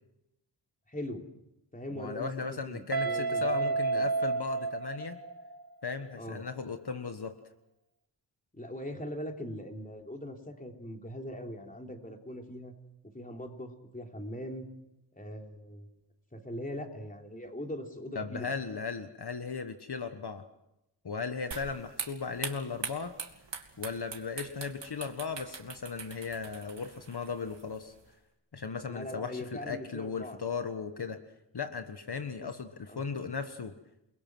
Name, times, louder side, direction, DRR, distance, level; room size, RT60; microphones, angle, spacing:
voice 1, 0.9-1.2 1.7-4.1 6.1-6.4 8.5-12.7 13.1-14.6 15.1-15.9 16.3-18.5 28.9-30.4 31.0-31.1 32.4-32.5 32.9-33.0, left 1 dB, 20° left, 3 dB, 3.3 m, -41 dB
voice 2, 1.9-5.2 5.8-7.4 18.1-20.4 21.0-23.1 23.8-27.9 28.5-31.2 31.5-33.7, left 5 dB, 55° left, 7 dB, 1.4 m, -37 dB
Guitar, 2.9-5.7, right 4 dB, 50° right, 1.6 m, -31 dB
sound 1, 21.5-28.1, right 5 dB, 70° right, 2.9 m, -43 dB
29.5 x 21.5 x 6.2 m, 0.89 s
wide cardioid pair, 95°, 45 cm